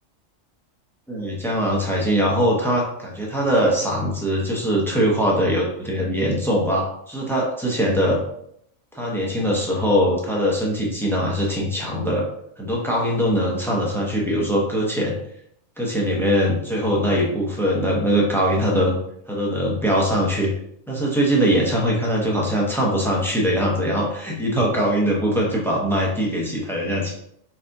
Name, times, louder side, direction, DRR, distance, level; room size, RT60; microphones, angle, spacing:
voice 1, 1.1-8.2 8.9-12.3 12.6-15.2 15.8-19.0 19.3-20.5 20.9-27.1, equal, ahead, -3 dB, 0.8 m, -22 dB
4.1 x 3.9 x 2.7 m, 0.70 s
omnidirectional pair, 1.4 m